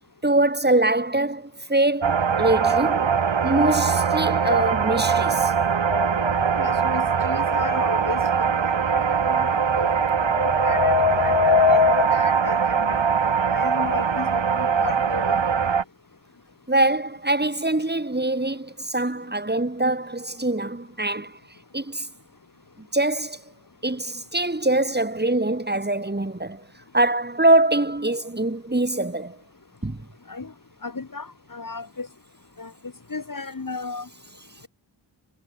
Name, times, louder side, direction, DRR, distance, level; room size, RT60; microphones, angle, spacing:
voice 1, 0.2-3.1 3.4-5.5 16.7-21.4 21.7-22.1 22.8-23.4 23.8-26.6 26.9-29.4 29.8-30.0, right 2 dB, 20° right, 3.8 m, -23 dB
sound 1, 2.0-15.8, right 6 dB, 85° right, 2.2 m, -22 dB
sound 2, 5.9-6.6 9.9-12.1, left 6 dB, 65° left, 1.7 m, -22 dB
voice 2, 6.6-8.5 8.9-10.1 10.6-10.9 11.2-11.9 12.1-15.4 30.3-30.5 30.8-32.1 32.6-32.7 33.1-34.1, left 4 dB, 45° left, 2.6 m, -34 dB
wide cardioid pair, 60°, 44 cm